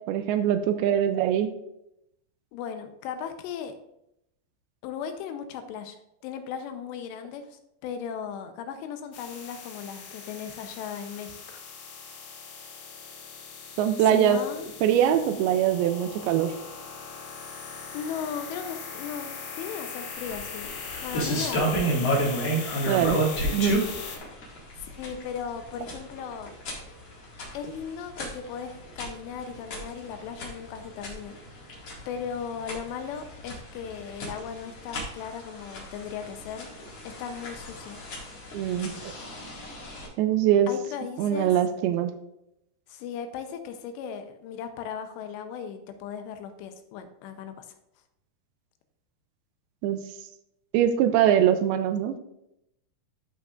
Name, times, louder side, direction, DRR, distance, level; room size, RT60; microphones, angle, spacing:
voice 1, 0.0-1.5 13.8-14.4 14.8-16.5 22.9-23.2 23.5-23.8 38.5-38.9 40.2-40.7 41.2-42.1 49.8-50.0 50.7-52.2, right 10 dB, 80° right, 9 dB, 2.3 m, -22 dB
voice 2, 2.5-3.7 4.8-6.0 6.2-11.6 14.0-14.7 17.9-20.7 21.0-22.3 24.8-26.5 27.5-31.4 32.1-36.7 37.0-38.0 40.7-41.5 42.9-47.7, left 7 dB, 85° left, 8 dB, 2.9 m, -37 dB
sound 1, 9.1-24.2, left 5 dB, 65° left, 2.5 m, -40 dB
sound 2, 20.2-40.1, right 1 dB, 45° left, 2.4 m, -33 dB
13.0 x 5.6 x 2.5 m, 0.81 s
omnidirectional pair, 4.9 m